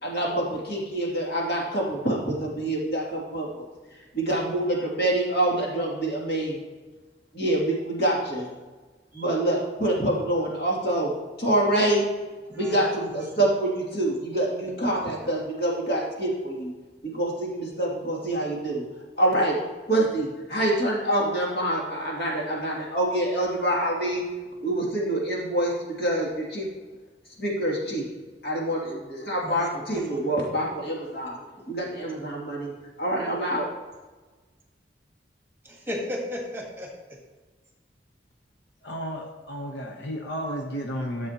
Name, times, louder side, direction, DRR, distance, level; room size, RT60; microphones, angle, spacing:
voice 1, 0.0-6.6 7.3-8.5 9.1-11.1 11.4-12.0 12.5-16.7 17.0-18.8 19.2-19.6 19.9-24.2 24.6-26.7 27.4-28.1 28.4-32.7 33.0-33.7, right 1 dB, 60° left, -4 dB, 2.7 m, -26 dB
voice 2, 29.4-30.2 32.1-32.2 35.6-37.2, left 1 dB, 15° right, 0 dB, 1.4 m, -35 dB
voice 3, 38.8-41.3, equal, 75° left, 2 dB, 1.0 m, -33 dB
13.5 x 7.2 x 2.9 m, 1.3 s
head